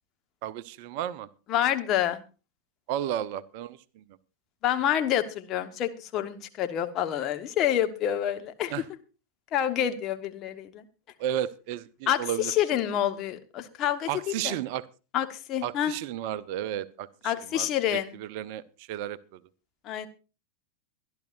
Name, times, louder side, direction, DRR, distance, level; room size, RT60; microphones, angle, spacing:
voice 1, 0.4-1.3 2.9-4.0 8.7-8.8 11.2-12.5 14.1-14.9 15.6-19.4, right 11 dB, 45° right, 17 dB, 0.6 m, -33 dB
voice 2, 1.5-2.2 4.6-8.7 9.5-10.8 12.1-14.6 15.1-15.9 17.2-18.1 19.8-20.1, left 11 dB, 35° left, 8 dB, 1.3 m, -28 dB
23.5 x 11.5 x 2.6 m, 0.33 s
figure-of-eight pair, 90°, 0 cm